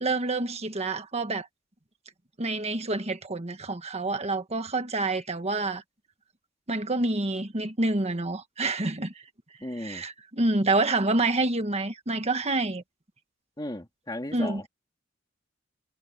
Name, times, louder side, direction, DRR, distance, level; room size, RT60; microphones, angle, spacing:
voice 1, 0.0-1.5 2.4-5.8 6.7-9.1 9.8-12.8 14.3-14.6, right 2 dB, 35° right, 1.5 m, -27 dB
voice 2, 9.6-10.0 13.6-14.7, left 1 dB, 20° left, 2.2 m, -35 dB
head